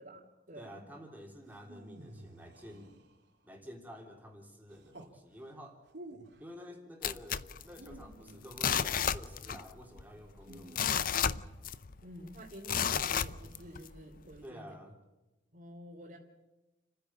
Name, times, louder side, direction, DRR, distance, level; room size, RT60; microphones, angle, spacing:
voice 1, 0.0-0.8 10.5-10.6 12.0-14.7 15.5-16.2, equal, 45° right, -3 dB, 2.9 m, -49 dB
voice 2, 0.5-3.0 3.4-5.8 6.4-11.3 14.4-14.9, equal, 10° right, 1 dB, 3.3 m, -50 dB
sound 1, 1.4-3.4 4.7-5.2 5.8-6.5 7.6-8.9 10.4-11.6 13.2-14.0, right 1 dB, 60° right, 2.8 m, -53 dB
sound 2, 7.0-8.1 8.5-9.7 10.0-10.1 10.5-12.0 12.6-13.9 14.4-14.5, left 8 dB, 45° left, 0.6 m, -32 dB
30.0 x 10.0 x 8.8 m, 1.1 s
head